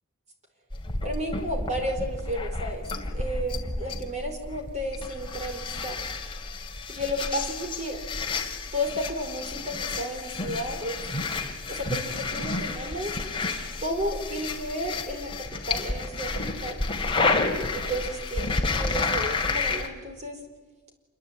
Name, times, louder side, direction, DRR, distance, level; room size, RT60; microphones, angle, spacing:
sound 1, 0.7-19.9, left 3 dB, 25° left, 2.6 m, -31 dB
voice 1, 1.0-2.8 3.1-6.0 6.9-8.0 8.7-11.0 11.7-13.1 13.8-16.3 16.6-16.8 17.7-20.4, equal, 30° right, 4 dB, 4.6 m, -32 dB
27.5 x 23.5 x 9.0 m, 1.3 s
head